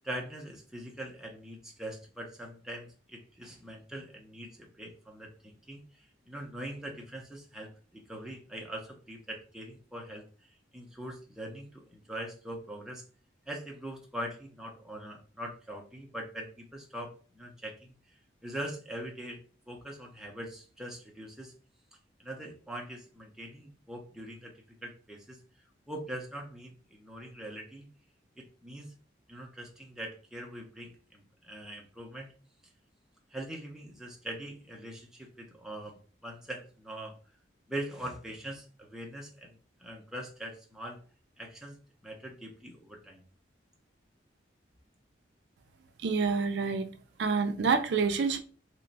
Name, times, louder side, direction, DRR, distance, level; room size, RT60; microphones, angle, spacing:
voice 1, 0.0-10.2 10.7-13.0 13.5-17.9 18.4-19.4 19.7-21.5 22.2-24.5 24.8-25.4 25.9-27.9 28.4-28.9 29.3-32.3 33.3-37.2 37.7-41.0 41.4-41.8 42.0-43.2, right 1 dB, ahead, 0.6 m, -42 dB
voice 2, 46.0-46.9 47.2-48.4, right 5 dB, 65° right, 0.4 m, -27 dB
3.0 x 2.2 x 3.9 m
head